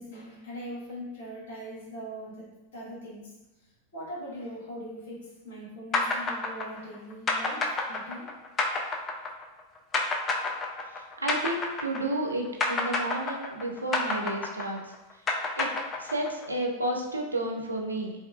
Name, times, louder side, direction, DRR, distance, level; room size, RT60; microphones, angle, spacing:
voice 1, 0.0-2.5 2.7-3.2 3.9-8.3 12.8-13.1 14.0-14.1 16.0-16.1, equal, 60° left, -6 dB, 1.2 m, -41 dB
sound 1, 5.9-12.3 12.6-16.5, left 3 dB, 20° left, 0.3 m, -29 dB
voice 2, 10.9-14.9 15.6-15.7 16.0-18.2, right 1 dB, 80° right, 1 dB, 0.3 m, -31 dB
2.7 x 2.3 x 2.3 m, 0.99 s
figure-of-eight pair, 90°, 0 cm